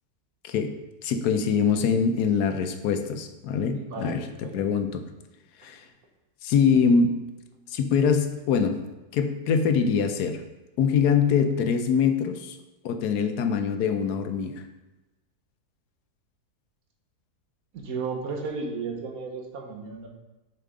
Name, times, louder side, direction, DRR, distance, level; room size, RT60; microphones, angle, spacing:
voice 1, 1.0-4.2 4.5-5.0 5.6-5.8 6.4-7.2 7.7-8.8 9.1-10.4 10.8-12.6 12.8-14.6, left 6 dB, 75° left, 7 dB, 1.2 m, -23 dB
voice 2, 3.7-4.6 17.7-20.1, right 4 dB, 65° right, 2 dB, 1.5 m, -34 dB
6.8 x 5.7 x 3.7 m, 1.1 s
omnidirectional pair, 1.7 m